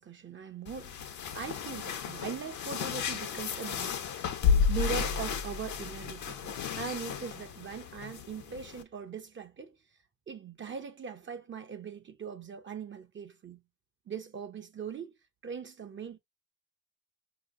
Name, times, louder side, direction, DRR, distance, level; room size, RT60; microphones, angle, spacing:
voice 1, 0.0-3.9 4.7-9.8 10.3-13.6 14.1-15.1 15.4-16.2, right 6 dB, 40° right, 0.7 m, -40 dB
sound 1, 0.7-8.8, left 7 dB, 70° left, 0.9 m, -32 dB
4.9 x 3.0 x 2.5 m
cardioid pair, 90°, 30 cm